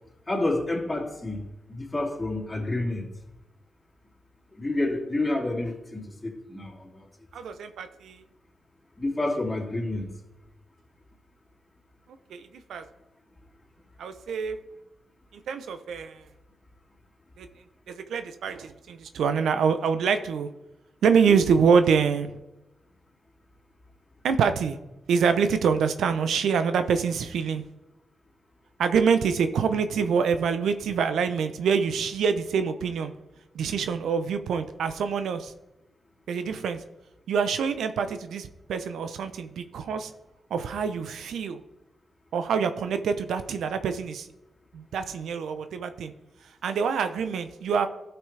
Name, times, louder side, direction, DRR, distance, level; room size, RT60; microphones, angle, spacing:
voice 1, 0.3-3.1 4.5-7.1 9.0-10.1, left 2 dB, 25° left, -3 dB, 3.0 m, -29 dB
voice 2, 7.3-8.2 12.3-12.8 14.0-14.6 15.5-16.2 17.4-17.5 17.9-20.5 21.0-22.4 24.2-24.8 25.1-27.6 28.8-33.1 33.5-35.5 36.3-36.8 37.3-40.1 40.5-41.6 42.3-44.3 44.7-46.1 46.6-47.9, right 6 dB, 85° right, 10 dB, 0.6 m, -25 dB
12.5 x 5.9 x 3.3 m, 0.97 s
cardioid pair, 60°, 0 cm